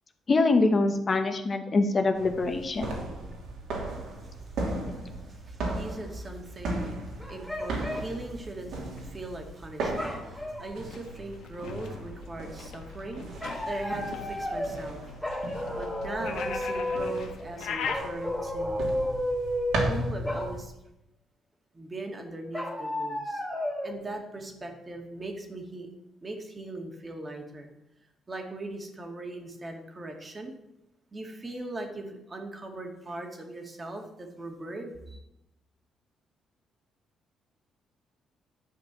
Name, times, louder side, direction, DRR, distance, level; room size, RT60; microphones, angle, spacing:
voice 1, 0.3-2.9, left 3 dB, 40° left, 6 dB, 1.1 m, -24 dB
sound 1, 2.1-20.6, right 1 dB, 80° right, 2.9 m, -37 dB
voice 2, 3.9-15.2 15.8-18.8 19.9-20.7 21.7-23.4 23.8-25.9 26.2-27.7 28.3-30.5 31.1-35.2, right 2 dB, 30° right, 3 dB, 2.2 m, -40 dB
sound 2, 5.6-5.9 7.2-8.1 9.9-10.8 13.4-14.9 15.2-17.3 17.9-20.0 20.2-20.5 22.5-23.9, left 1 dB, ahead, 2.9 m, -32 dB
sound 3, 10.8-18.0, left 6 dB, 80° left, 1.4 m, -40 dB
11.0 x 5.1 x 7.6 m, 0.88 s
cardioid pair, 90°, 0 cm